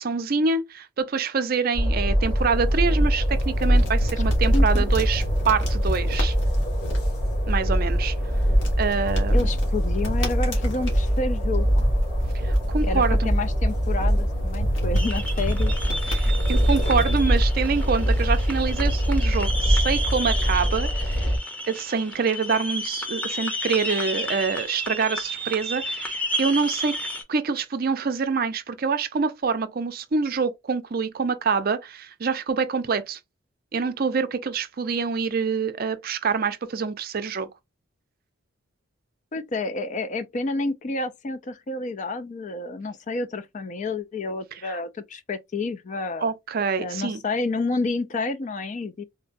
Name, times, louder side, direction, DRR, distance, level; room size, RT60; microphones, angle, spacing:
voice 1, 0.0-6.3 7.5-8.1 8.8-9.5 12.4-13.3 16.1-21.3 21.7-26.1 26.4-26.9 27.3-33.2 33.7-37.5 44.6-44.8 46.2-47.2, right 5 dB, 50° right, 0.5 m, -26 dB
Train, 1.7-21.4, equal, 55° left, 1.7 m, -23 dB
sound 1, 2.3-20.5, equal, 80° left, 1.6 m, -38 dB
voice 2, 4.5-4.8 9.3-11.9 12.8-15.7 39.3-46.3 46.8-49.0, left 3 dB, 40° left, 0.4 m, -29 dB
sound 2, 14.9-27.2, equal, 5° left, 0.7 m, -32 dB
3.8 x 2.1 x 2.5 m
head